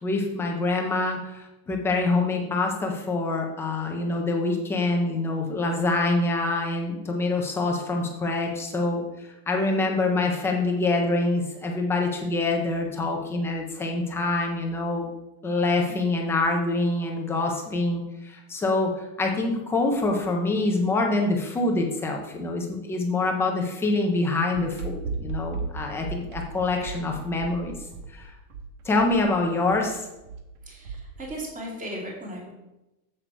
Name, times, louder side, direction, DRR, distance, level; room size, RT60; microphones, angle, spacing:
voice 1, 0.0-15.1 15.4-27.8 28.1-28.3 28.8-30.1, left 2 dB, 5° left, 1 dB, 0.3 m, -25 dB
sound 1, 24.5-31.4, right 4 dB, 80° right, 1.7 m, -36 dB
voice 2, 30.7-32.5, right 1 dB, 15° right, -2 dB, 2.4 m, -36 dB
8.0 x 7.6 x 4.5 m, 0.94 s
supercardioid pair, 170°, 42 cm